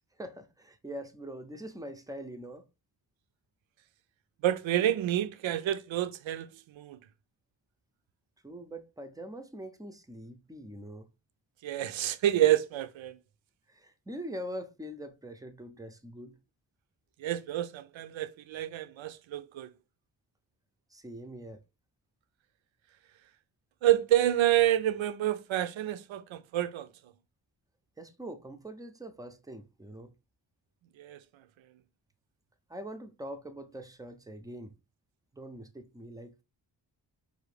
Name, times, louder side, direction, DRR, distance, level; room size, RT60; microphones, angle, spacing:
voice 1, 0.2-2.7 8.4-11.1 13.7-16.4 20.9-21.6 28.0-30.1 32.7-34.7 35.3-36.4, right 1 dB, 10° right, 0.5 m, -43 dB
voice 2, 4.4-7.0 11.6-13.2 17.2-19.7 23.8-26.9 31.0-31.2, right 12 dB, 80° right, 0.5 m, -28 dB
5.0 x 2.7 x 3.2 m
wide cardioid pair, 110°, 46 cm